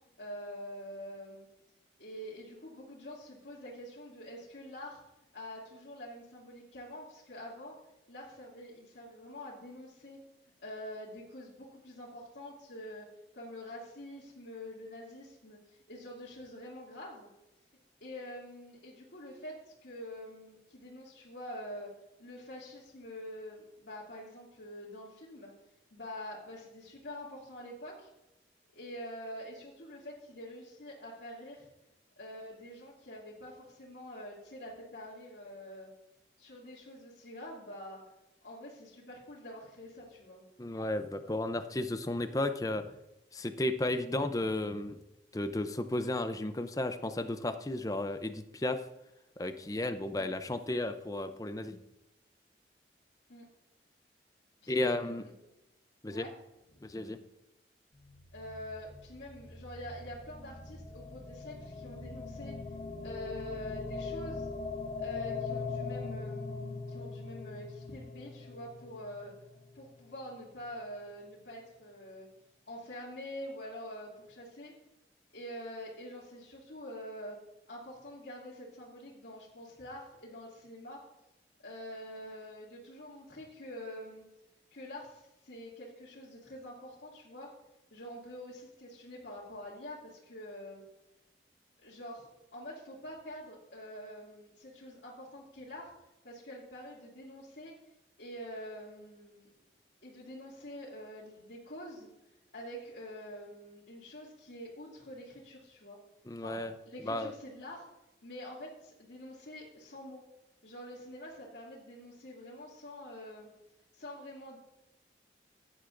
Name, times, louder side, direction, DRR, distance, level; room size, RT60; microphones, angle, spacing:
voice 1, 0.2-1.5 2.0-5.0 5.3-7.8 8.1-10.2 10.6-13.1 13.3-17.3 18.0-21.9 22.2-25.5 25.9-28.1 28.7-31.7 32.2-35.9 36.4-38.0 38.4-40.4 50.2-50.3 53.3-53.5 54.6-55.3 56.1-56.3 56.7-56.9 58.3-62.5 63.0-64.5 65.0-69.3 69.7-72.3 72.7-74.7 75.3-77.4 77.7-81.0 81.6-84.2 84.7-87.5 87.9-90.8 91.8-95.9 96.2-97.7 98.2-99.5 100.0-102.1 102.5-106.0 106.4-107.9 108.2-110.2 110.6-113.5 113.9-114.6, left 1 dB, 85° left, -7 dB, 2.5 m, -46 dB
voice 2, 40.6-42.8 43.3-45.0 45.3-48.8 49.4-51.8 54.7-55.2 56.0-56.3 56.8-57.2 106.3-106.7 107.0-107.3, left 1 dB, 20° left, 10 dB, 0.5 m, -33 dB
sound 1, 57.9-70.2, left 4 dB, 45° left, 1.2 m, -41 dB
16.0 x 9.7 x 2.6 m, 0.93 s
head